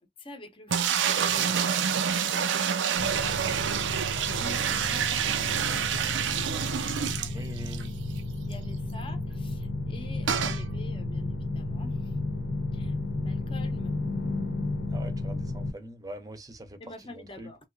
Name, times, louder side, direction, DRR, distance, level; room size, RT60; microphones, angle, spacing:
voice 1, 0.2-2.5 3.1-3.6 4.1-7.8 8.4-12.0 12.7-13.9 16.8-17.6, left 2 dB, 30° left, 0.8 m, -48 dB
sound 1, 0.7-7.9 8.2-8.3 8.5-8.6 10.3-10.6, right 8 dB, 85° right, 0.5 m, -27 dB
sound 2, 3.0-15.7, left 2 dB, 65° left, 0.9 m, -33 dB
voice 2, 7.3-8.0 14.9-17.5, right 1 dB, 20° right, 0.7 m, -43 dB
3.0 x 2.8 x 2.6 m
head